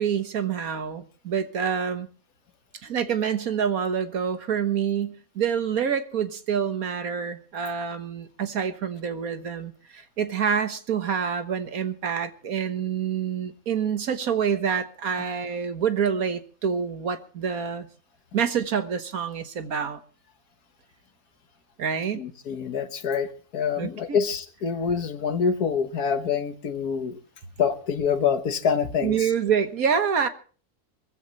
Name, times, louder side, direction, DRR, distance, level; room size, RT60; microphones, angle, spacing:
voice 1, 0.0-2.1 2.8-17.9 18.3-20.0 21.8-22.2 23.8-24.2 29.0-30.3, right 7 dB, 65° right, 1.7 m, -27 dB
voice 2, 22.1-27.2 27.6-29.3, left 6 dB, 70° left, 1.8 m, -26 dB
24.5 x 15.0 x 3.1 m
omnidirectional pair, 1.7 m